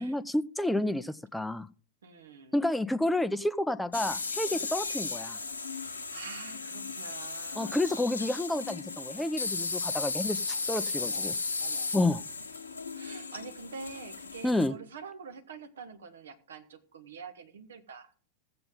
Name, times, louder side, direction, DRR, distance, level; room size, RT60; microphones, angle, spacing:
voice 1, 0.0-1.7 2.5-5.4 7.6-11.3 11.9-12.2 14.4-14.7, left 1 dB, 5° left, 13 dB, 0.5 m, -30 dB
voice 2, 2.0-2.6 4.5-4.7 5.6-8.0 10.9-11.3 11.6-11.9 12.9-18.1, right 5 dB, 65° right, 8 dB, 1.3 m, -46 dB
sound 1, 3.9-14.7, left 4 dB, 75° left, 1.0 m, -35 dB
15.5 x 7.8 x 3.8 m, 0.43 s
figure-of-eight pair, 90°, 0 cm